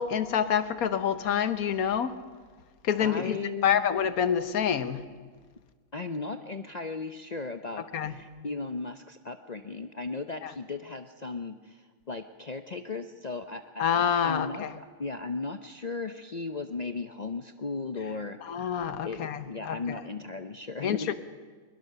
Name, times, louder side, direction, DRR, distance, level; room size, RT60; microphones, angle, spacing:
voice 1, 0.0-2.1 2.8-5.0 7.9-8.1 10.4-10.5 13.8-14.7 18.5-20.0 20.8-21.1, left 8 dB, 85° left, 12 dB, 1.5 m, -27 dB
voice 2, 3.0-3.9 5.9-13.8 14.2-18.4 19.0-19.2 19.5-21.1, left 3 dB, 40° left, 8 dB, 0.6 m, -36 dB
21.5 x 21.0 x 6.7 m, 1.5 s
omnidirectional pair, 1.5 m